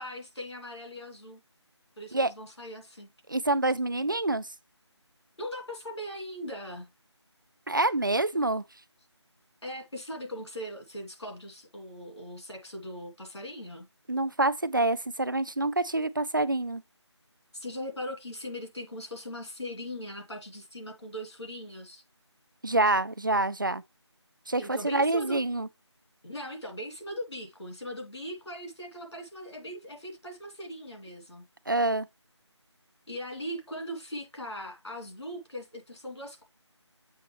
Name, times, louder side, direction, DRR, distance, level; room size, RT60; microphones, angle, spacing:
voice 1, 0.0-1.4 2.0-3.1 5.4-6.9 8.3-8.4 9.6-13.9 17.5-22.0 24.6-25.4 26.2-31.4 33.1-36.4, equal, 70° left, 2.7 m, -40 dB
voice 2, 3.3-4.5 7.7-8.6 14.1-16.8 22.6-23.8 24.5-25.7 31.7-32.1, right 2 dB, 45° right, 0.4 m, -26 dB
7.6 x 3.9 x 3.2 m
figure-of-eight pair, 180°, 15 cm